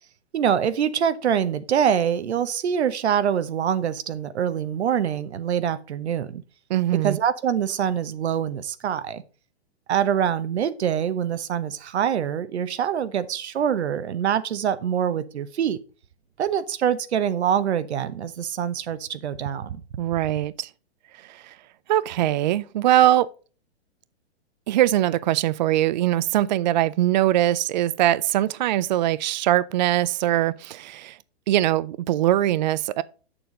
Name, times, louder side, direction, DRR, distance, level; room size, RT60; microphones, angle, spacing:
voice 1, 0.3-6.4 7.0-9.2 9.9-15.8 16.4-19.8, right 8 dB, 80° right, 1.0 m, -24 dB
voice 2, 6.7-7.2 20.0-20.7 21.3-21.5 21.9-23.3 24.7-31.2 31.5-33.0, right 13 dB, 45° right, 0.4 m, -22 dB
7.2 x 6.9 x 3.8 m
hypercardioid pair, 155°, 32 cm